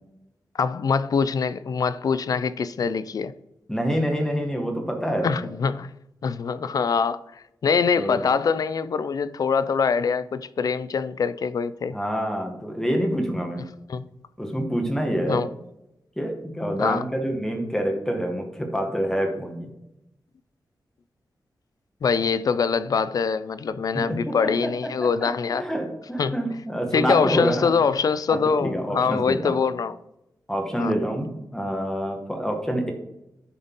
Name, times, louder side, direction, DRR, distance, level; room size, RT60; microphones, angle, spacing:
voice 1, 0.5-3.3 5.2-5.9 6.2-12.0 13.9-14.1 15.3-15.5 16.8-17.0 22.0-25.7 26.2-26.6 26.9-30.0 30.8-30.9, left 5 dB, 55° left, 0.3 m, -24 dB
voice 2, 3.7-5.5 8.0-8.2 11.9-13.6 14.4-15.4 16.2-19.7 23.9-24.3 25.2-27.7 28.3-29.6 30.5-32.9, equal, 5° left, 1.2 m, -27 dB
10.5 x 3.9 x 3.7 m
wide cardioid pair, 175°, 8 cm